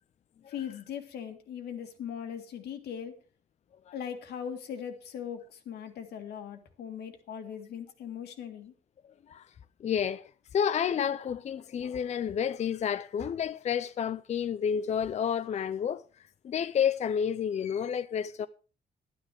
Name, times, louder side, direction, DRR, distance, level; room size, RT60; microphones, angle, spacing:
voice 1, 0.5-3.2 3.9-8.7, left 8 dB, 85° left, 1.9 m, -39 dB
voice 2, 9.8-16.0 16.4-18.5, left 8 dB, 45° left, 0.5 m, -30 dB
11.5 x 9.7 x 4.7 m
cardioid pair, 125°, 16 cm